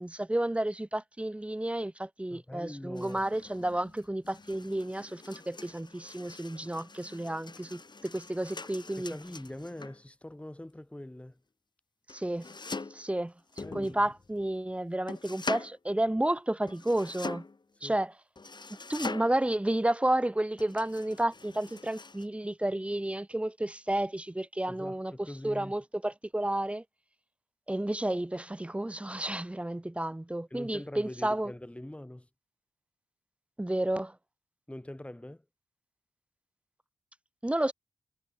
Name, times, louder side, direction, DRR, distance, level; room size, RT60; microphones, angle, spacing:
voice 1, 0.0-9.1 12.1-12.5 12.9-13.3 13.7-17.4 17.8-18.1 18.9-26.8 27.7-31.5 33.6-34.1 37.4-37.7, right 1 dB, 10° right, 0.6 m, -31 dB
voice 2, 2.3-3.2 9.0-11.4 13.6-14.1 17.8-18.0 24.7-25.7 30.5-32.3 34.7-35.4, left 1 dB, 10° left, 2.1 m, -43 dB
sound 1, 3.0-10.0 12.1-13.1 13.5-14.5 15.1-15.8 16.7-17.6 18.4-19.5 20.6-22.3, left 3 dB, 35° left, 3.2 m, -43 dB
cardioid pair, 55°, 13 cm